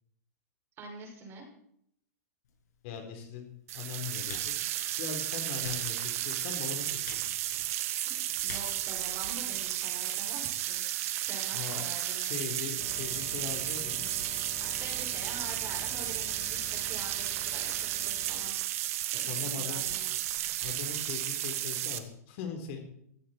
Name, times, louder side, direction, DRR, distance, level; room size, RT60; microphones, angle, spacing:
voice 1, 0.8-1.5 8.0-10.8 11.2-12.4 14.6-20.4, right 3 dB, 25° right, 1 dB, 6.3 m, -46 dB
Typing, 2.4-9.9, left 6 dB, 75° left, 8.0 m, -52 dB
voice 2, 2.8-3.4 3.7-4.5 5.0-7.0 7.3-7.6 11.5-11.8 12.1-14.1 19.2-19.8 20.6-22.8, left 7 dB, 45° left, 5 dB, 4.0 m, -40 dB
sound 1, 3.7-22.0, right 13 dB, 55° right, 1.8 m, -33 dB
sound 2, 12.8-18.5, left 3 dB, 20° left, 2.9 m, -48 dB
19.0 x 16.5 x 4.5 m, 0.70 s
hypercardioid pair, 145°, 9 cm